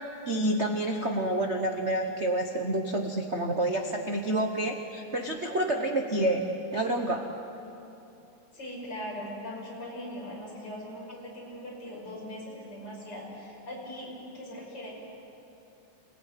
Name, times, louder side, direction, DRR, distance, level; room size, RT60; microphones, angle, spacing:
voice 1, 0.2-6.4 6.7-7.3, right 1 dB, 65° right, 3 dB, 0.6 m, -28 dB
voice 2, 8.5-14.9, left 1 dB, 35° left, -3 dB, 6.6 m, -40 dB
27.0 x 18.0 x 9.3 m, 2.8 s
omnidirectional pair, 3.4 m